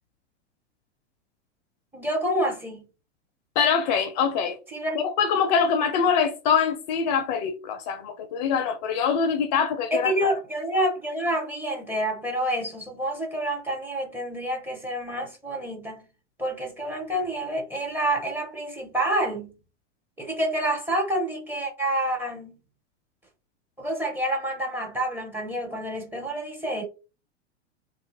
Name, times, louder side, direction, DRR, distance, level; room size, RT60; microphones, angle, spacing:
voice 1, 1.9-2.9 4.7-5.0 9.9-16.0 16.4-19.6 20.2-22.6 23.8-26.8, right 1 dB, 5° right, 0.6 m, -28 dB
voice 2, 3.6-4.6 4.9-10.1, left 6 dB, 35° left, 0.5 m, -24 dB
2.7 x 2.3 x 2.9 m
figure-of-eight pair, 95°, 36 cm